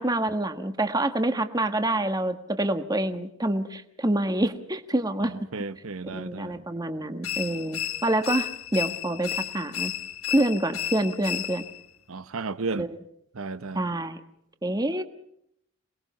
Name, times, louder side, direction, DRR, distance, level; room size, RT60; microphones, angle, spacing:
voice 1, 0.0-5.3 6.0-9.9 10.3-11.6 12.8-13.0 13.7-14.2 14.6-15.0, right 1 dB, 20° right, 1.4 m, -27 dB
voice 2, 5.2-6.6 12.1-12.9 13.3-13.9, right 3 dB, 85° right, 0.9 m, -33 dB
sound 1, 7.2-11.9, left 10 dB, 85° left, 1.4 m, -33 dB
27.5 x 20.0 x 5.6 m
head